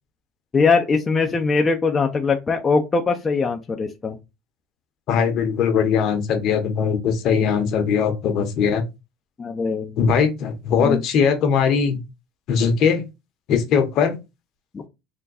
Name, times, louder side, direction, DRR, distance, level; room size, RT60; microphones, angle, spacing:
voice 1, 0.5-4.2 9.4-10.0 10.8-11.0, left 4 dB, 25° left, 0.6 m, -21 dB
voice 2, 5.1-8.8 10.0-12.0 12.5-13.0 13.5-14.2, left 6 dB, 55° left, 0.9 m, -20 dB
3.5 x 2.2 x 4.0 m
supercardioid pair, 105°, 0 cm